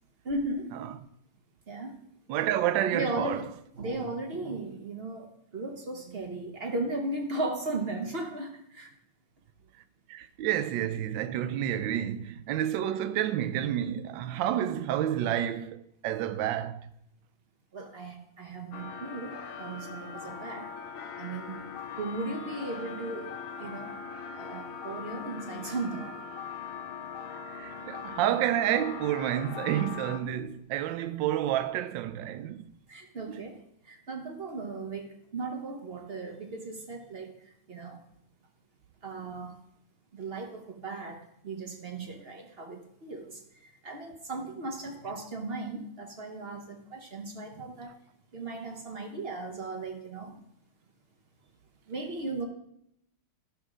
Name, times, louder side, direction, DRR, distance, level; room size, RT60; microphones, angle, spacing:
voice 1, 0.2-0.7 1.7-1.9 2.9-3.4 3.8-5.3 5.5-8.9 17.7-20.7 21.2-21.6 22.0-23.3 23.6-23.9 24.4-26.2 32.9-33.6 33.9-37.3 37.7-38.0 39.0-39.6 40.1-43.4 43.8-47.9 48.3-50.3 51.9-52.4, right 2 dB, 50° right, 0.7 m, -36 dB
voice 2, 2.3-3.5 10.1-16.9 27.5-32.7 33.3-33.4, right 11 dB, 75° right, 1.2 m, -29 dB
sound 1, 18.7-30.2, left 6 dB, 85° left, 1.5 m, -41 dB
11.5 x 6.3 x 3.7 m
omnidirectional pair, 2.2 m